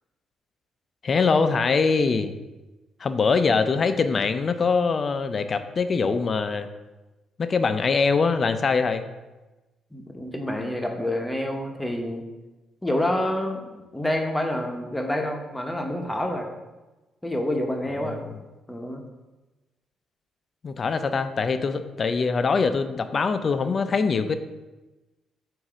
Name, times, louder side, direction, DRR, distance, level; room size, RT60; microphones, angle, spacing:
voice 1, 1.0-2.3 3.0-6.7 7.4-9.0 18.0-18.4 20.6-24.4, left 4 dB, 40° left, 9 dB, 0.4 m, -23 dB
voice 2, 9.9-12.2 12.8-16.5 17.2-18.2 18.7-19.0, left 1 dB, 10° left, 2 dB, 0.9 m, -28 dB
7.2 x 2.6 x 4.9 m, 1.1 s
cardioid pair, 90°, 0 cm